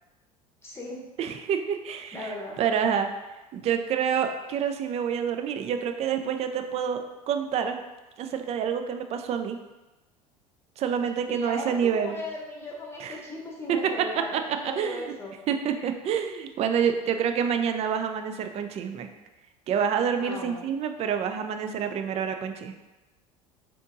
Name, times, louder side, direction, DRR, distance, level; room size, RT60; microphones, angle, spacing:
voice 1, 0.6-1.0 2.1-2.6 11.3-15.3 15.8-15.9 20.2-20.7, left 1 dB, 15° left, -3 dB, 1.0 m, -37 dB
voice 2, 1.2-2.3 2.6-3.1 3.5-7.0 7.3-7.8 8.2-9.6 10.8-12.2 13.0-13.2 13.7-13.8 14.3-15.1 15.5-19.1 19.7-22.8, right 7 dB, 35° right, 7 dB, 0.4 m, -27 dB
4.2 x 2.9 x 2.6 m, 1.1 s
hypercardioid pair, 75°, 20 cm